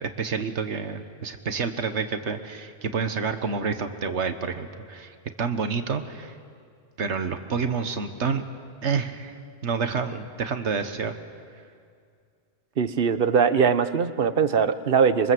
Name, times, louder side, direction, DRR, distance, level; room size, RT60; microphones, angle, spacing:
voice 1, 0.0-6.3 7.0-8.4 8.8-11.1, right 5 dB, 90° right, 8 dB, 1.6 m, -29 dB
voice 2, 12.8-15.3, right 6 dB, 55° right, 12 dB, 1.1 m, -21 dB
26.5 x 24.0 x 7.8 m, 2.2 s
omnidirectional pair, 1.1 m